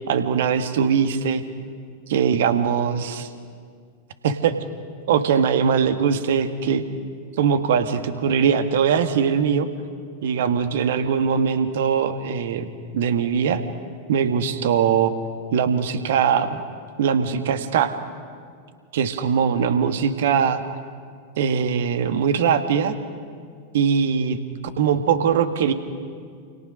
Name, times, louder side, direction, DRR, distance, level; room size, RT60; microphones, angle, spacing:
voice 1, 0.1-1.4 2.1-3.3 4.2-4.5 5.1-6.8 7.4-9.7 10.2-13.6 14.1-15.1 15.5-16.6 17.0-17.9 18.9-20.6 21.4-22.9 23.7-24.4 24.8-25.7, right 7 dB, 55° right, 9 dB, 1.7 m, -21 dB
29.0 x 28.5 x 6.4 m, 2.1 s
figure-of-eight pair, 90°, 0 cm